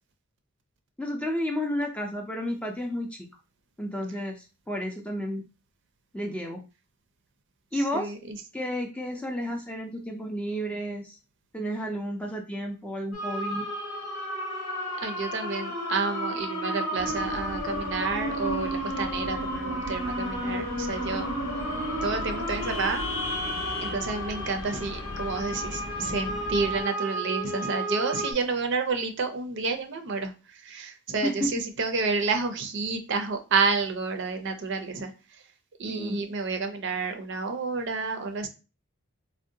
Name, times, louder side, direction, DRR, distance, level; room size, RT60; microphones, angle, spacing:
voice 1, 1.0-3.2 3.8-5.4 6.1-6.6 7.7-8.1 8.5-11.2 11.5-13.7 31.2-31.5 35.9-36.2, equal, 5° left, 2 dB, 0.3 m, -31 dB
voice 2, 7.8-8.4 15.0-21.3 22.0-23.0 23.8-35.1 35.8-38.5, right 4 dB, 55° right, 6 dB, 0.5 m, -30 dB
sound 1, 13.1-28.3, equal, 90° left, 0.9 m, -32 dB
sound 2, 17.0-26.8, left 2 dB, 70° left, 0.8 m, -38 dB
3.6 x 2.1 x 2.6 m, 0.31 s
head